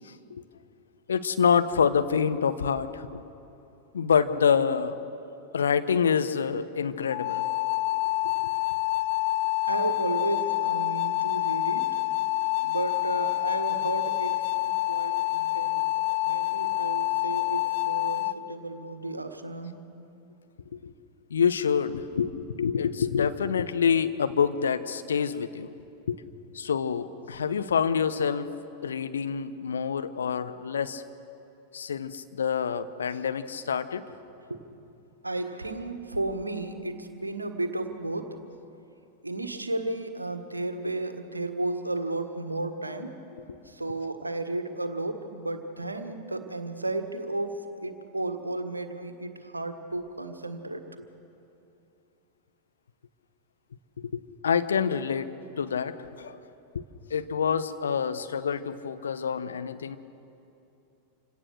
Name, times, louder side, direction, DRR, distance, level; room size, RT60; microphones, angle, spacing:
voice 1, 0.0-0.4 1.1-3.3 3.9-5.0 5.5-7.4 16.7-16.8 20.7-20.9 21.3-25.7 26.1-26.2 26.5-28.5 28.8-31.0 31.7-34.1 54.0-56.4 56.7-56.8 57.1-60.0, left 7 dB, 70° left, 11 dB, 0.9 m, -27 dB
sound 1, 7.1-18.3, left 18 dB, 50° left, 0.5 m, -27 dB
voice 2, 9.7-11.9 12.6-15.8 16.2-19.7 34.5-34.6 35.2-38.4 39.2-43.1 43.6-51.1, right 2 dB, 80° right, 7 dB, 1.5 m, -33 dB
26.5 x 17.5 x 6.6 m, 2.8 s
figure-of-eight pair, 90°, 0 cm